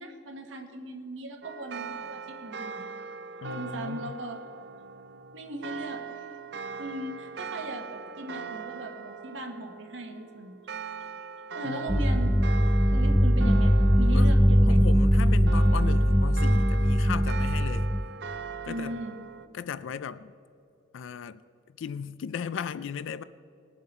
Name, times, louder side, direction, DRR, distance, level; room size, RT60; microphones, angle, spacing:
voice 1, 0.0-2.8 3.6-4.4 5.3-6.0 6.8-10.5 11.5-12.3 12.9-14.8 18.7-19.2, right 1 dB, 80° right, 1.5 m, -38 dB
sound 1, 1.4-19.5, right 5 dB, 60° right, 0.4 m, -40 dB
voice 2, 3.4-4.2 11.6-12.1 14.1-17.9 18.6-19.0 19.5-20.3 20.9-21.4 21.8-23.2, left 7 dB, 85° left, 0.4 m, -36 dB
sound 2, 11.9-18.0, equal, ahead, 0.3 m, -21 dB
20.5 x 7.4 x 4.3 m
head